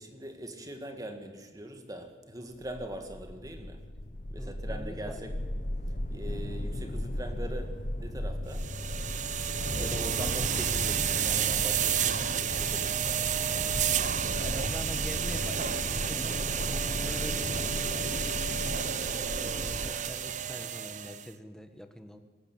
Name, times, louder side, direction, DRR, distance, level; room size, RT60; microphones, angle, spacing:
voice 1, 0.0-3.8 4.3-5.4 5.9-8.7 9.8-13.7, right 1 dB, 20° right, 6 dB, 2.0 m, -42 dB
sound 1, 2.7-19.9, left 1 dB, 45° left, 1.1 m, -36 dB
voice 2, 4.4-5.2 9.7-10.0 14.4-18.8 19.3-22.2, equal, 5° left, 7 dB, 1.5 m, -44 dB
sound 2, 8.5-21.3, right 9 dB, 45° right, 0.8 m, -31 dB
26.0 x 12.5 x 8.8 m, 1.3 s
head